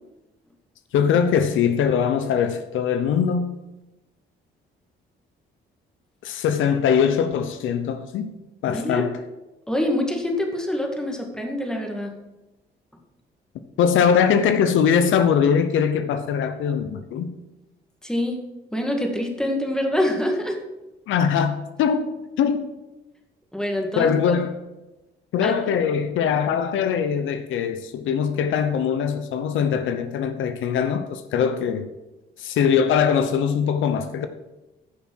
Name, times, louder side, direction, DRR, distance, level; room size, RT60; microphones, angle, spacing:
voice 1, 0.9-3.6 6.2-8.3 8.6-9.1 13.8-17.3 21.1-22.8 24.0-24.6 25.3-31.9 32.4-34.3, left 7 dB, 80° left, 0.8 m, -22 dB
voice 2, 8.7-9.1 9.7-12.1 18.0-18.4 18.7-20.6 23.5-24.2 25.4-25.5, left 1 dB, 5° left, 1.9 m, -25 dB
10.0 x 5.9 x 6.3 m
cardioid pair, 90°, 20 cm